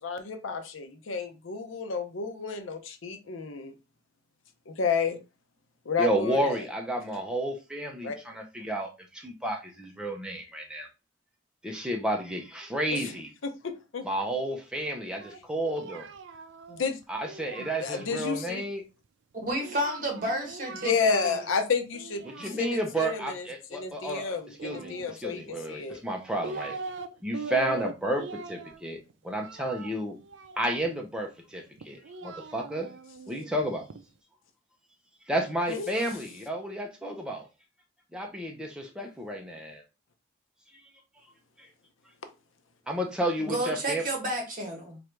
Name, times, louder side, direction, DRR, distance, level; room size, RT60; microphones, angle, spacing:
voice 1, 0.0-3.7 4.7-5.2 5.9-6.6 8.0-8.2 12.9-13.1 13.4-14.1 16.7-17.0 17.8-18.6 20.8-26.0 35.7-35.9, left 5 dB, 85° left, 0.6 m, -31 dB
voice 2, 6.0-10.9 11.6-13.3 14.0-16.1 17.1-18.8 22.4-24.4 24.6-26.8 27.2-30.2 30.6-32.9 33.3-33.9 35.3-37.5 38.1-39.8 41.6-41.7 42.9-44.0, right 1 dB, 5° right, 0.6 m, -31 dB
Singing, 15.2-18.5 19.6-21.6 21.9-23.1 24.5-25.5 26.1-27.1 27.3-31.0 31.8-34.0, right 4 dB, 65° right, 0.4 m, -42 dB
voice 3, 19.3-20.9 21.2-21.4 43.4-45.0, right 1 dB, 45° right, 1.2 m, -31 dB
3.2 x 2.6 x 4.5 m
head